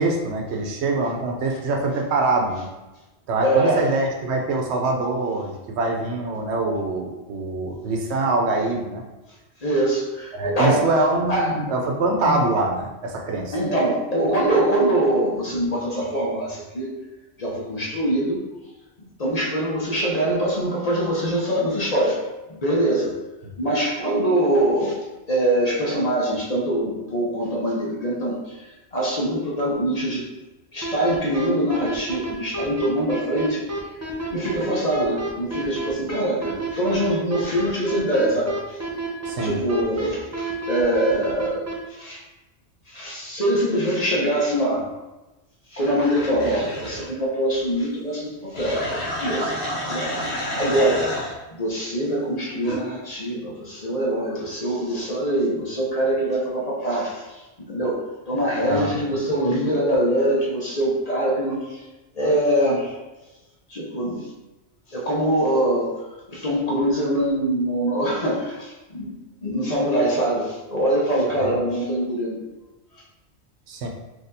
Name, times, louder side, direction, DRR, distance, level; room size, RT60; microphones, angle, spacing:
voice 1, 0.0-2.7 3.3-9.0 10.3-13.5 23.4-23.5 39.3-39.6 58.7-59.0 71.4-71.6 73.7-73.9, right 2 dB, 80° right, 1 dB, 0.9 m, -24 dB
voice 2, 3.4-3.8 9.6-10.9 11.3-11.5 12.2-12.4 13.5-16.9 17.4-18.4 19.2-22.2 22.5-23.1 23.6-25.0 25.3-28.6 28.9-30.3 30.7-33.7 34.3-38.8 39.4-42.2 42.9-44.9 45.7-49.5 49.8-51.1 51.5-61.8 62.1-62.9 63.7-64.3 64.9-65.9 66.3-69.2 69.4-72.4, right 1 dB, 40° left, -4 dB, 0.7 m, -23 dB
sound 1, 30.8-41.7, right 2 dB, 25° right, 0.4 m, -30 dB
sound 2, 45.8-47.1 48.5-51.4 52.6-52.8, equal, 65° left, 1.2 m, -29 dB
4.1 x 2.8 x 2.6 m, 1.1 s
omnidirectional pair, 1.1 m